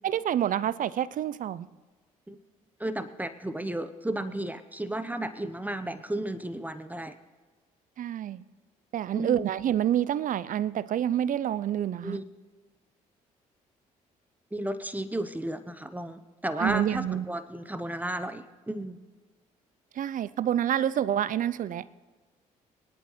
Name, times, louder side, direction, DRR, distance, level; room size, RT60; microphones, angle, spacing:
voice 1, 0.0-1.7 8.0-8.4 8.9-12.2 16.6-17.2 20.0-21.9, right 10 dB, 50° right, 19 dB, 0.5 m, -28 dB
voice 2, 2.8-7.1 9.1-9.5 12.0-12.2 14.5-19.0, right 1 dB, 10° right, 11 dB, 0.9 m, -33 dB
22.0 x 11.0 x 3.2 m, 1.3 s
hypercardioid pair, 50°, 17 cm